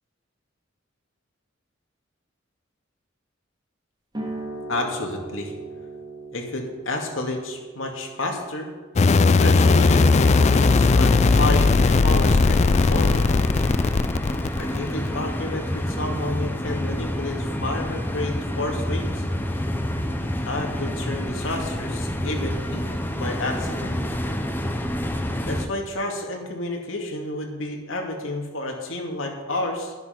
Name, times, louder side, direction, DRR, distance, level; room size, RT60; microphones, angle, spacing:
sound 1, 4.1-11.3, right 2 dB, 20° right, 2.8 m, -39 dB
voice 1, 4.7-5.5 6.3-8.7 9.3-13.2 14.6-19.2 20.5-22.9 23.1-24.0 25.5-29.9, left 2 dB, 75° left, 1 dB, 2.3 m, -30 dB
sound 2, 9.0-15.1, left 4 dB, 35° left, 0.4 m, -18 dB
sound 3, 9.6-25.7, equal, 10° left, 0.9 m, -28 dB
11.5 x 10.5 x 5.9 m, 1.4 s
head